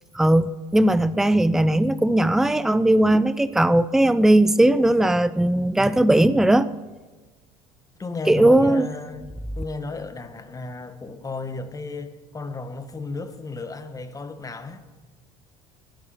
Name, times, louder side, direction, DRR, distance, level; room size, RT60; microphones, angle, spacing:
voice 1, 0.1-6.7 8.3-8.9, right 1 dB, 5° right, 0.6 m, -18 dB
voice 2, 8.0-9.3 9.5-14.8, left 3 dB, 20° left, 1.5 m, -34 dB
18.5 x 10.5 x 5.8 m
supercardioid pair, 80°, 16 cm